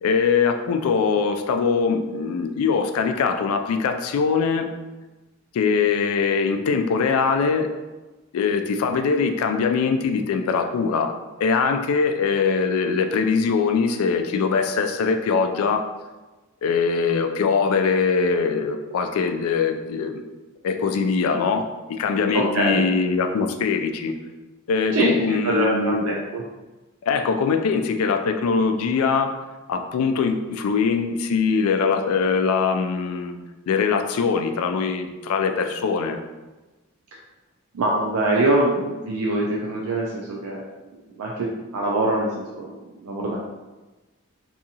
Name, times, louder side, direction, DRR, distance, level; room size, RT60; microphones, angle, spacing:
voice 1, 0.0-4.7 5.5-7.7 8.3-11.1 11.4-15.8 16.6-20.2 20.6-24.1 24.7-26.1 27.0-29.3 29.7-33.4 33.7-36.2, left 5 dB, 85° left, 7 dB, 0.3 m, -22 dB
voice 2, 22.3-22.8 24.9-25.1 25.4-26.4 37.7-40.6 41.2-41.5 41.7-42.7 43.0-43.4, right 2 dB, 85° right, -2 dB, 0.4 m, -23 dB
2.7 x 2.4 x 2.7 m, 1.2 s
head